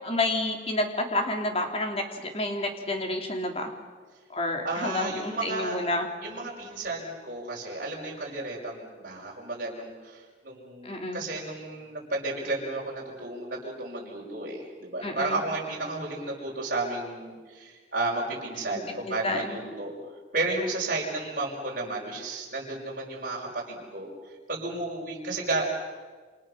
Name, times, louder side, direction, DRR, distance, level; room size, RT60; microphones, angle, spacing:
voice 1, 0.0-3.7 4.3-6.1 10.8-11.3 15.0-15.4 19.1-19.6, left 2 dB, 30° left, 3 dB, 3.4 m, -29 dB
voice 2, 4.6-5.8 6.2-19.9 20.3-24.1 24.5-25.7, right 2 dB, 50° right, -3 dB, 5.8 m, -32 dB
29.0 x 27.5 x 6.6 m, 1.5 s
head